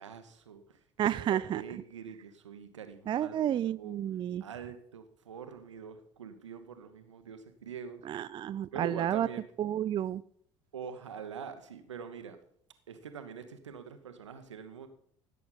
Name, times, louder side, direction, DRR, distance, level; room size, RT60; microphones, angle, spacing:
voice 1, 0.0-0.8 1.2-4.0 4.4-8.0 8.7-9.5 10.7-12.4 12.9-14.9, right 6 dB, 80° right, 9 dB, 1.1 m, -44 dB
voice 2, 1.0-1.6 3.1-4.4 8.1-9.3 9.6-10.2, right 10 dB, 30° right, 17 dB, 0.4 m, -31 dB
16.0 x 8.3 x 4.0 m, 0.67 s
figure-of-eight pair, 55°, 15 cm